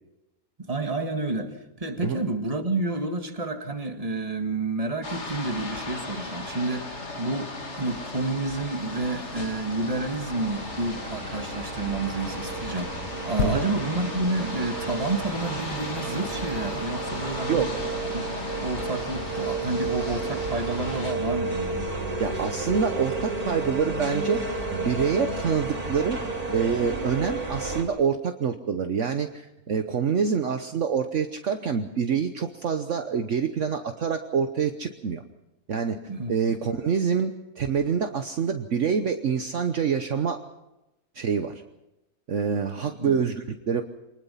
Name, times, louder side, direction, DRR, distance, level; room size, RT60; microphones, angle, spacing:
voice 1, 0.6-1.5 1.8-17.7 18.1-18.2 18.5-21.8 36.1-36.3 42.8-43.2, right 2 dB, 25° right, 5 dB, 2.0 m, -30 dB
sound 1, 5.0-21.1, left 2 dB, 50° left, 2.8 m, -36 dB
sound 2, 8.9-27.8, right 3 dB, 85° right, 4.3 m, -32 dB
sound 3, 13.4-17.0 17.6-17.7, left 7 dB, 80° left, 1.4 m, -35 dB
voice 2, 17.5-17.8 22.2-24.4 24.7-26.2 26.5-35.2 35.7-36.0 36.3-40.4 41.1-41.6 42.3-43.8, right 6 dB, 60° right, 7 dB, 1.3 m, -26 dB
24.5 x 20.0 x 5.7 m, 0.95 s
omnidirectional pair, 1.5 m